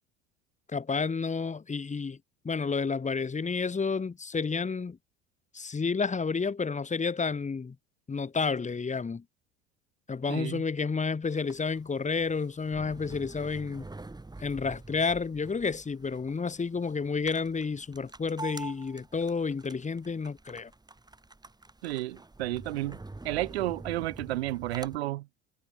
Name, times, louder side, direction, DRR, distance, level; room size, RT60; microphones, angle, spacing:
voice 1, 0.7-2.2 2.4-5.0 5.5-7.8 8.1-9.2 10.1-13.9 14.4-20.7, left 5 dB, 20° left, 2.8 m, -30 dB
voice 2, 10.3-10.6 21.8-23.0 23.2-25.2, right 17 dB, 80° right, 1.1 m, -32 dB
sound 1, 11.2-25.0, right 2 dB, 15° right, 7.5 m, -46 dB
hypercardioid pair, 70°, 31 cm